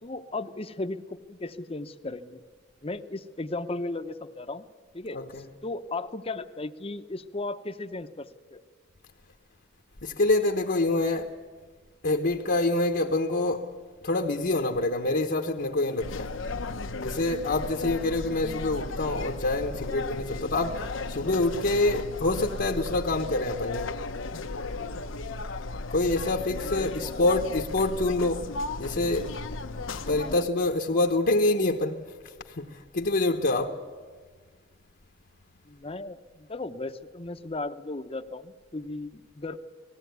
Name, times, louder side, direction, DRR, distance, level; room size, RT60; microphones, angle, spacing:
voice 1, 0.0-2.4 2.8-4.7 4.9-5.2 5.6-8.6 26.6-27.4 30.2-30.4 35.7-39.6, left 2 dB, 30° left, 0.8 m, -36 dB
voice 2, 10.0-11.3 12.0-13.7 14.0-16.3 17.0-23.9 25.9-29.3 30.1-32.0 32.5-33.8, left 2 dB, 55° left, 1.0 m, -26 dB
sound 1, 16.0-30.4, left 3 dB, 80° left, 0.9 m, -35 dB
19.5 x 15.5 x 9.3 m
head